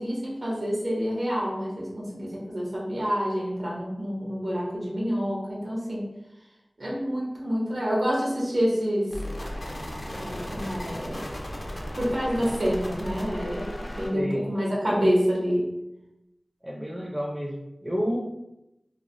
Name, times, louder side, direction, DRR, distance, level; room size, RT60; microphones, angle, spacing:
voice 1, 0.0-6.1 6.8-9.2 10.1-11.3 12.0-15.7, equal, 80° right, -5 dB, 1.0 m, -27 dB
sound 1, 9.1-14.1, equal, 55° left, 0.5 m, -35 dB
voice 2, 14.1-14.4 16.6-18.2, equal, 15° right, -2 dB, 0.5 m, -30 dB
3.2 x 2.0 x 2.5 m, 0.89 s
wide cardioid pair, 70°, 0 cm